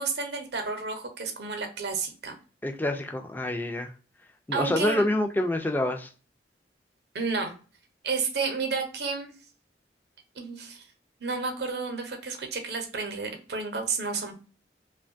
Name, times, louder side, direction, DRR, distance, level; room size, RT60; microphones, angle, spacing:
voice 1, 0.0-2.3 4.5-5.0 7.1-7.5 8.0-9.3 10.4-10.8 11.2-14.3, right 4 dB, 70° right, 0.7 m, -31 dB
voice 2, 2.6-3.9 4.5-6.1, left 1 dB, 10° left, 0.3 m, -27 dB
2.9 x 2.2 x 2.5 m
head